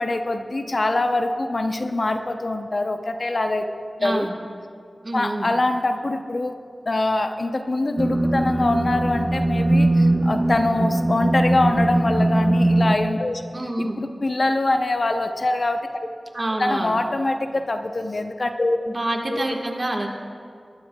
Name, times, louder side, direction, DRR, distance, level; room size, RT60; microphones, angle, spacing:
voice 1, 0.0-3.7 4.0-4.3 5.1-6.6 6.9-13.4 13.8-15.8 16.6-18.8 19.3-19.4, left 2 dB, 55° left, 6 dB, 0.7 m, -24 dB
voice 2, 4.0-4.3 5.0-5.5 13.5-13.9 16.3-16.9 18.9-20.1, right 1 dB, 45° right, 1 dB, 1.6 m, -27 dB
sound 1, 8.0-13.0, right 1 dB, 25° right, 0.8 m, -20 dB
21.0 x 12.0 x 2.3 m, 2.2 s
wide cardioid pair, 50°, 0 cm